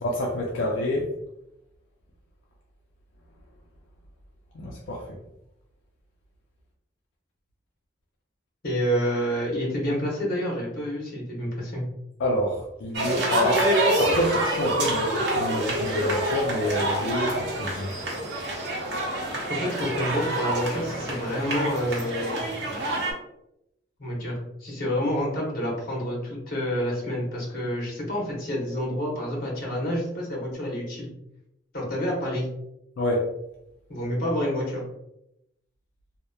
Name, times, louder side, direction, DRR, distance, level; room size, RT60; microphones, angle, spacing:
voice 1, 0.0-1.1 4.5-5.0 12.2-13.7 14.0-17.9 33.0-33.3, left 1 dB, 85° left, -2 dB, 0.4 m, -27 dB
voice 2, 8.6-11.8 19.5-22.4 24.0-31.1 31.7-32.5 33.9-34.8, equal, 55° left, -3 dB, 0.9 m, -28 dB
sound 1, 12.9-23.1, right 1 dB, 70° right, 0.7 m, -27 dB
2.8 x 2.1 x 2.2 m, 0.83 s
head